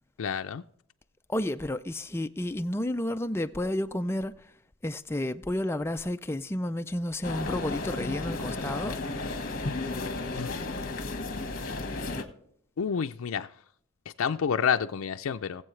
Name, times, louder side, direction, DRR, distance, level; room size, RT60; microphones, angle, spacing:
voice 1, 0.2-0.6 10.4-10.5 12.8-13.5 14.2-15.6, left 7 dB, 80° left, 0.4 m, -29 dB
voice 2, 1.3-4.5 4.8-9.0, left 1 dB, 10° left, 0.3 m, -31 dB
sound 1, 7.2-12.2, left 2 dB, 45° left, 1.4 m, -33 dB
19.5 x 7.7 x 3.2 m
head